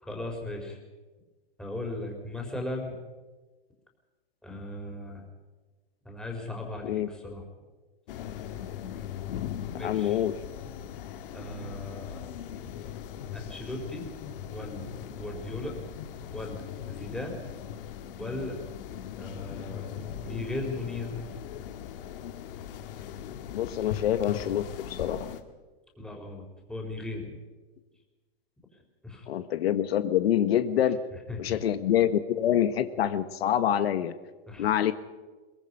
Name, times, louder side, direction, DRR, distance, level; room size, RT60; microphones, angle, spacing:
voice 1, 0.0-0.8 1.6-3.0 4.4-5.2 6.0-7.4 9.7-10.3 11.3-12.7 13.2-14.0 14.5-15.7 16.3-17.4 18.2-18.6 19.2-21.2 26.0-26.4 26.7-27.4 29.0-29.3 31.3-31.5 34.5-34.7, left 2 dB, ahead, 1 dB, 4.1 m, -37 dB
sound 1, 8.1-25.4, left 9 dB, 65° left, 1.9 m, -39 dB
voice 2, 9.8-10.4 23.5-25.3 29.3-31.0 31.4-34.1 34.6-34.9, left 10 dB, 85° left, 11 dB, 1.3 m, -26 dB
22.5 x 22.0 x 5.5 m, 1.3 s
supercardioid pair, 150°, 30 cm